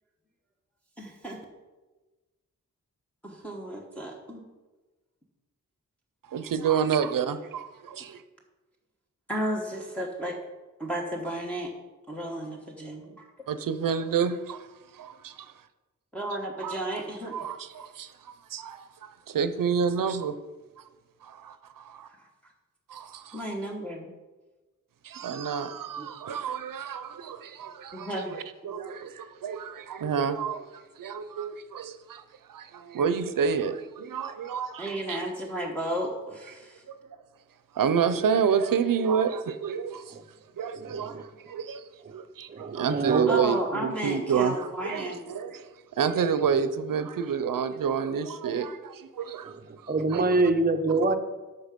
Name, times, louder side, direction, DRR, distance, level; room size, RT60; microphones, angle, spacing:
voice 1, 1.0-1.4 3.2-4.5 9.3-10.4 10.8-11.7 12.1-13.3 16.1-17.4 22.1-22.3 23.3-24.1 26.0-26.1 27.9-28.3 34.8-36.8 43.3-45.3, right 1 dB, 5° left, 1.2 m, -33 dB
voice 2, 6.3-8.2 13.5-14.7 14.9-15.5 16.6-16.8 17.3-20.4 21.2-22.1 22.9-23.4 25.0-32.2 32.5-35.3 36.9-37.0 37.7-40.2 40.6-45.7 46.0-50.2, right 7 dB, 85° right, 0.8 m, -29 dB
voice 3, 40.7-41.2 42.0-42.1 42.5-43.4 49.4-51.2, right 2 dB, 30° right, 0.8 m, -26 dB
13.5 x 5.8 x 5.2 m
wide cardioid pair, 160°, 32 cm